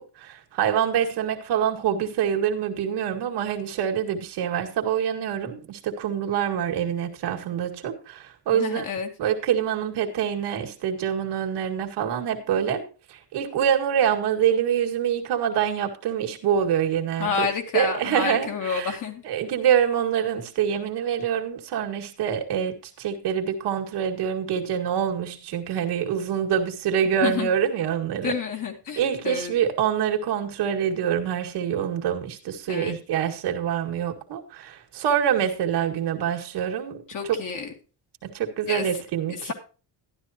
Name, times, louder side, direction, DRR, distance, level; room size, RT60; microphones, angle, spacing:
voice 1, 0.0-8.9 9.2-12.8 13.1-17.5 17.7-19.0 19.2-28.4 29.0-37.4 38.2-39.5, right 9 dB, 80° right, 2.0 m, -25 dB
voice 2, 8.5-9.1 17.2-19.2 27.2-27.5 28.2-29.5 32.7-33.0 37.1-37.7 38.7-38.9 39.4-39.5, left 5 dB, 50° left, 2.5 m, -29 dB
12.5 x 11.5 x 2.8 m
cardioid pair, 155°, 40 cm